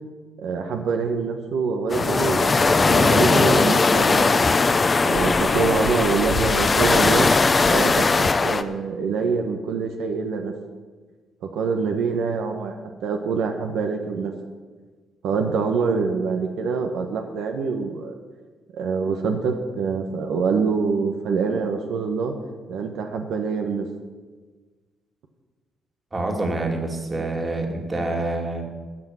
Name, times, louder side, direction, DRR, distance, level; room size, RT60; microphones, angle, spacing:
voice 1, 0.4-4.4 5.0-7.3 7.7-10.5 11.4-12.7 13.0-14.3 15.2-18.2 18.7-22.3 22.7-23.9, right 5 dB, 80° right, 4 dB, 1.2 m, -25 dB
sound 1, 1.9-8.6, left 4 dB, 30° left, 0.7 m, -19 dB
voice 2, 26.1-28.6, right 2 dB, 25° right, 2 dB, 2.6 m, -26 dB
13.5 x 6.4 x 9.1 m, 1.4 s
cardioid pair, 90°, 0 cm